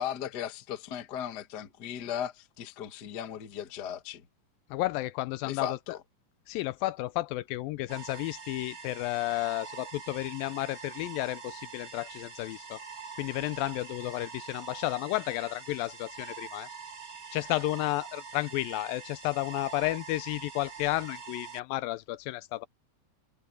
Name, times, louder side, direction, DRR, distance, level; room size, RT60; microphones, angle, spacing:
voice 1, 0.0-4.2 5.4-6.0, left 9 dB, 55° left, 1.1 m, -37 dB
voice 2, 4.7-5.8 6.5-12.8 13.2-16.7 17.3-22.7, left 18 dB, 80° left, 2.3 m, -32 dB
sound 1, 7.9-21.6, right 5 dB, 35° right, 7.2 m, -45 dB
omnidirectional pair, 4.2 m